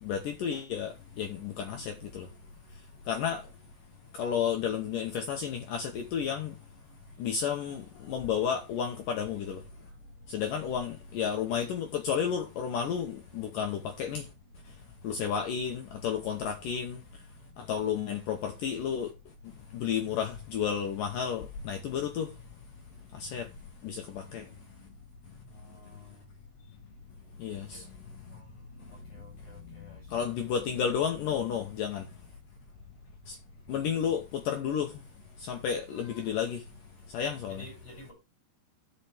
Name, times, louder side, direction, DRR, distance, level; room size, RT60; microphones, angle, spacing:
voice 1, 0.0-2.3 3.1-3.5 4.1-6.6 7.2-9.6 10.3-14.3 15.0-17.0 17.6-19.1 19.7-22.3 23.1-23.5 23.8-24.5 27.4-27.9 28.3-28.4 29.6-29.8 30.1-32.1 33.3-33.4 33.7-35.0 35.4-36.6 37.1-37.7, left 8 dB, 85° left, 1.9 m, -32 dB
voice 2, 29.1-30.0 33.9-34.0 37.6-38.1, left 1 dB, 40° left, 9.0 m, -49 dB
16.0 x 5.7 x 3.4 m
omnidirectional pair, 5.3 m